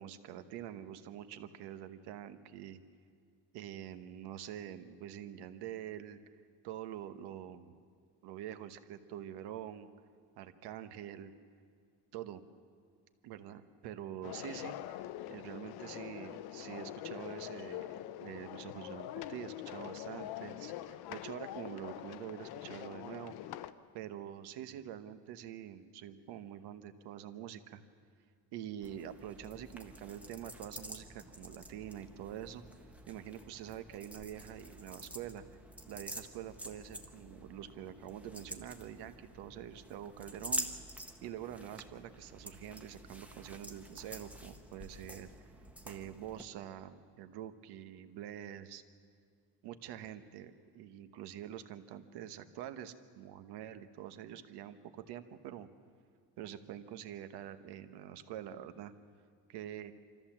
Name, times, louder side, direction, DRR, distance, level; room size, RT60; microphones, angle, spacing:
voice 1, 0.0-2.8 3.5-6.2 6.6-7.8 8.2-9.9 10.4-11.3 12.1-12.4 13.2-15.0 15.3-23.3 23.9-27.8 28.5-32.6 33.1-35.4 35.9-40.7 41.2-45.3 45.8-48.8 49.6-55.7 56.4-58.9 59.5-59.9, right 10 dB, 75° right, 10 dB, 1.1 m, -46 dB
sound 1, 14.2-23.7, left 13 dB, 70° left, 0.7 m, -44 dB
sound 2, 28.8-46.4, right 1 dB, 5° right, 0.8 m, -47 dB
25.5 x 14.0 x 7.3 m, 2.1 s
cardioid pair, 170°, 40 cm